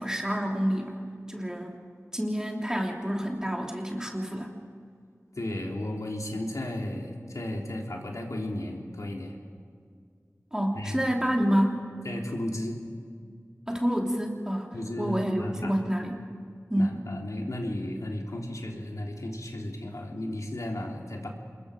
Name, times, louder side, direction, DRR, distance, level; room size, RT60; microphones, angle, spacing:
voice 1, 0.0-1.8 2.1-4.5 10.5-11.9 13.7-16.2 16.7-17.0, equal, 10° right, 0 dB, 3.0 m, -28 dB
voice 2, 5.4-9.3 10.7-11.0 12.0-12.8 14.7-15.7 16.8-21.3, left 1 dB, 75° left, 0 dB, 3.3 m, -34 dB
27.0 x 21.5 x 5.1 m, 2.2 s
wide cardioid pair, 50°, 6 cm